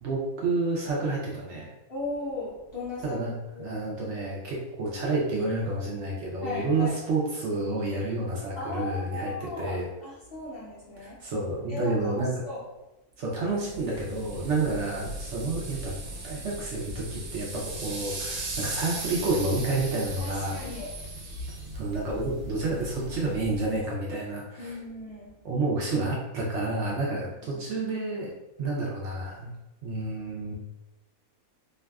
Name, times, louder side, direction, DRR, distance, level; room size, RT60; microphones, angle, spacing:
voice 1, 0.0-1.7 3.0-9.9 11.0-12.4 13.2-15.9 16.2-20.7 21.7-24.8 25.4-28.3 28.6-29.5 29.8-30.5, right 2 dB, 65° right, -4 dB, 0.7 m, -29 dB
voice 2, 1.9-3.2 3.5-3.8 6.4-6.9 8.6-11.2 11.7-12.6 18.3-18.6 20.2-20.9 24.6-25.3 27.5-27.6, left 3 dB, 60° left, -7 dB, 0.6 m, -37 dB
sound 1, 13.5-23.8, right 2 dB, 85° right, 1.0 m, -38 dB
2.5 x 2.3 x 2.2 m, 0.99 s
omnidirectional pair, 1.5 m